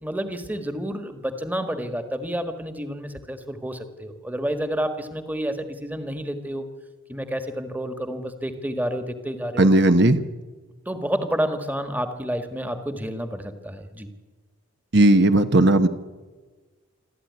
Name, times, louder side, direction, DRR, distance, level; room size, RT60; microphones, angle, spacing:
voice 1, 0.0-6.7 7.1-9.7 10.8-14.1, equal, 10° right, 7 dB, 1.5 m, -29 dB
voice 2, 9.6-10.2 14.9-15.9, right 1 dB, 50° right, 8 dB, 1.1 m, -16 dB
27.0 x 13.5 x 9.6 m, 1.3 s
head